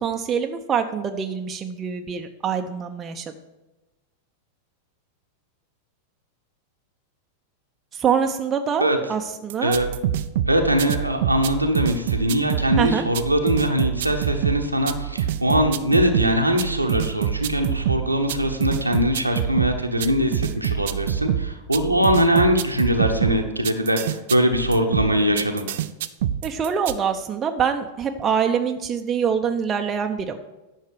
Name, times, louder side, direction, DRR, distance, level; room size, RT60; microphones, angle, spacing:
voice 1, 0.0-3.2 7.9-9.8 12.8-13.0 26.4-30.4, right 7 dB, 25° right, 5 dB, 0.8 m, -24 dB
sound 1, 9.5-27.0, right 10 dB, 55° right, 0.5 m, -26 dB
voice 2, 10.5-25.7, equal, 85° right, 3 dB, 1.1 m, -22 dB
10.5 x 6.5 x 6.3 m, 1.1 s
figure-of-eight pair, 90°, 0 cm